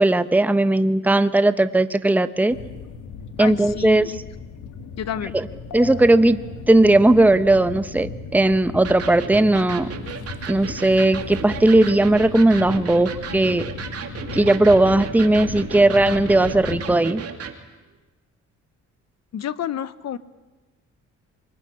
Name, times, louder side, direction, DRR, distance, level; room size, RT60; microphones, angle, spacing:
voice 1, 0.0-2.6 3.4-4.1 5.3-5.5 5.7-9.9 10.5-13.7 14.3-17.2, right 2 dB, 5° right, 11 dB, 0.9 m, -17 dB
sound 1, 2.5-17.0, left 5 dB, 75° left, 2.2 m, -36 dB
voice 2, 3.4-4.2 5.0-5.3 19.3-20.2, left 9 dB, 60° left, 14 dB, 1.1 m, -29 dB
Electric guitar, 8.8-17.6, right 6 dB, 55° right, 2.8 m, -34 dB
24.0 x 21.0 x 9.7 m, 1.2 s
cardioid pair, 90°, 30 cm